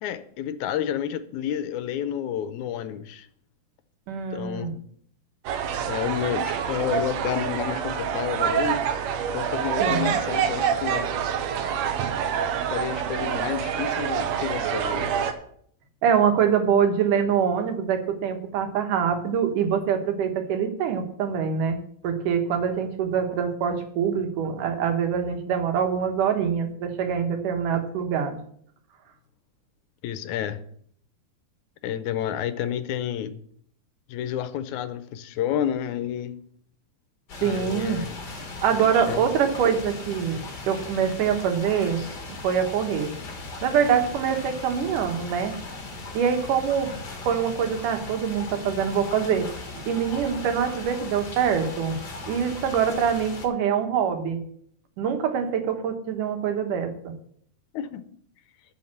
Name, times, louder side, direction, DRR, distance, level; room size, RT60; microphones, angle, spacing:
voice 1, 0.0-3.3 4.3-4.8 5.9-8.8 9.3-11.1 12.3-12.4 12.7-15.1 30.0-30.6 31.8-33.3 34.1-36.4 37.4-38.2 38.8-39.2 57.7-58.0, left 10 dB, 80° left, 12 dB, 2.0 m, -30 dB
voice 2, 4.1-4.7 9.8-10.2 16.0-21.8 22.0-28.4 37.4-38.0 38.6-40.4 40.7-42.0 42.3-43.1 43.6-45.5 46.1-47.0 47.3-52.0 52.3-54.4 55.0-57.1, right 7 dB, 90° right, 6 dB, 2.9 m, -24 dB
sound 1, 5.4-15.3, right 8 dB, 70° right, 2.0 m, -26 dB
sound 2, 37.3-53.5, left 3 dB, 40° left, 2.1 m, -38 dB
12.0 x 5.8 x 7.3 m, 0.64 s
omnidirectional pair, 3.5 m